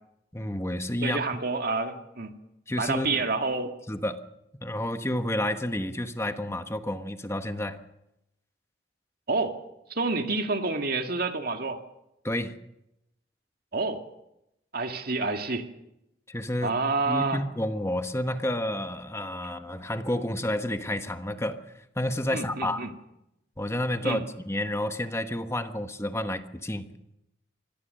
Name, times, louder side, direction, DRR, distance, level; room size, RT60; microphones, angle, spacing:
voice 1, 0.3-1.2 2.7-3.2 3.9-4.2 4.6-7.8 12.2-12.5 16.3-16.7 17.1-21.6 22.0-22.8 23.6-26.9, left 1 dB, 15° left, 8 dB, 1.2 m, -30 dB
voice 2, 1.0-2.3 2.8-3.8 9.3-9.6 9.9-11.8 13.7-14.0 14.7-15.7 16.6-17.4 22.3-22.9 24.0-24.2, right 3 dB, 55° right, 5 dB, 2.0 m, -28 dB
24.5 x 18.0 x 6.7 m, 0.86 s
head